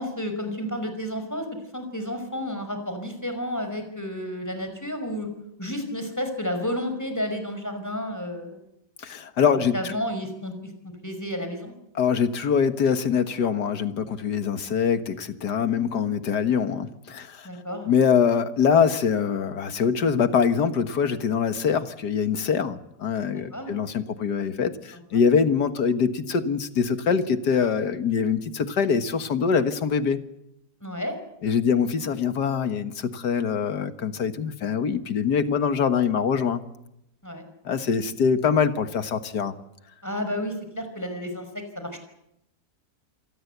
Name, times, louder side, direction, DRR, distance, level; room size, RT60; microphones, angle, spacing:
voice 1, 0.0-1.5 1.7-5.3 5.6-8.6 9.5-10.7 11.0-11.7 17.4-17.9 23.3-23.8 24.9-25.0 30.8-31.1 37.2-37.4 40.0-42.0, equal, 10° left, 7 dB, 5.3 m, -31 dB
voice 2, 9.0-9.9 12.0-17.5 17.9-30.2 31.4-36.6 37.7-39.5, left 6 dB, 85° left, 9 dB, 2.1 m, -24 dB
27.5 x 19.5 x 8.1 m, 0.84 s
omnidirectional pair, 1.7 m